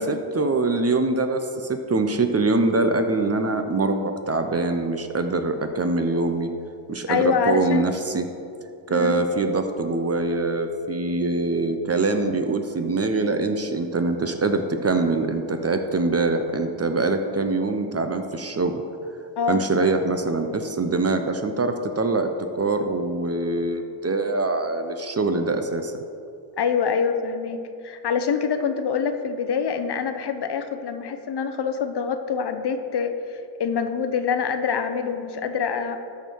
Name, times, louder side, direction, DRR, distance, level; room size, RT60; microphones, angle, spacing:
voice 1, 0.0-6.5 6.9-8.3 8.9-18.7 19.5-25.9, right 3 dB, 30° right, 7 dB, 0.7 m, -24 dB
voice 2, 7.1-7.9 8.9-9.2 19.4-19.6 26.6-36.0, left 6 dB, 55° left, 8 dB, 0.8 m, -25 dB
13.0 x 4.6 x 4.6 m, 2.6 s
cardioid pair, 80°, 49 cm